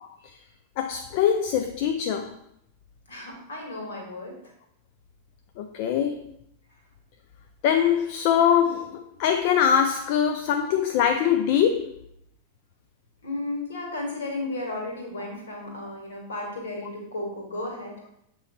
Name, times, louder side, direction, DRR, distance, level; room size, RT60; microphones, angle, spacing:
voice 1, 0.8-2.3 5.6-6.3 7.6-12.0, left 8 dB, 45° left, 0.4 m, -23 dB
voice 2, 3.1-4.4 13.2-18.0, left 2 dB, 65° left, 1.9 m, -34 dB
7.6 x 3.1 x 4.2 m
figure-of-eight pair, 90°, 0 cm